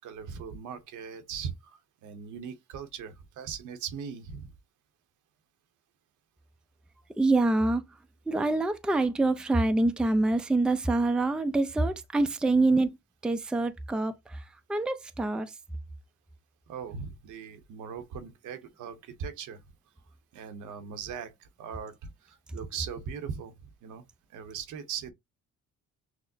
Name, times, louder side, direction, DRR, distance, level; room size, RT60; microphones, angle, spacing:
voice 1, 0.0-4.5 12.6-12.8 16.7-19.6 20.3-23.5 23.8-24.0 24.3-25.1, right 7 dB, 80° right, 0.9 m, -39 dB
voice 2, 7.2-7.9 8.3-13.0 13.2-14.4 14.7-15.5, right 2 dB, 5° right, 0.4 m, -26 dB
6.1 x 2.1 x 2.6 m
cardioid pair, 90°, 30 cm